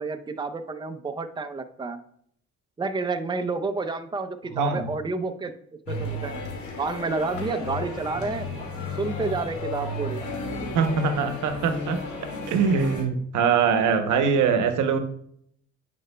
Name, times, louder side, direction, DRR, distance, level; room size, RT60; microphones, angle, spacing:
voice 1, 0.0-2.0 2.8-5.5 5.9-6.4 6.8-8.6 8.9-10.2, right 3 dB, 15° right, 8 dB, 0.6 m, -30 dB
voice 2, 4.5-4.9 10.7-15.0, right 6 dB, 80° right, 8 dB, 0.8 m, -23 dB
sound 1, 5.9-13.0, left 2 dB, 75° left, 2.0 m, -33 dB
9.5 x 5.0 x 2.2 m, 0.66 s
cardioid pair, 90°, 30 cm